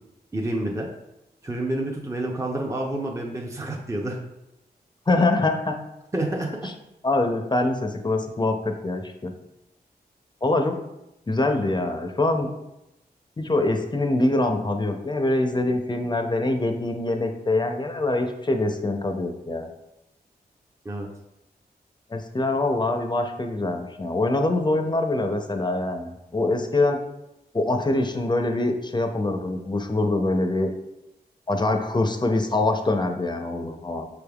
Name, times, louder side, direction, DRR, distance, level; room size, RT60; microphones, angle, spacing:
voice 1, 0.3-0.9 1.4-4.2 6.1-6.5 20.8-21.1, right 1 dB, 15° right, 0 dB, 0.6 m, -28 dB
voice 2, 5.1-5.8 6.6-6.7 7.0-9.3 10.4-10.8 11.3-12.5 13.4-19.7 22.1-27.0 27.5-30.7 31.5-34.1, left 2 dB, 25° left, 4 dB, 0.6 m, -24 dB
5.9 x 3.4 x 2.3 m, 0.90 s
cardioid pair, 45°, 17 cm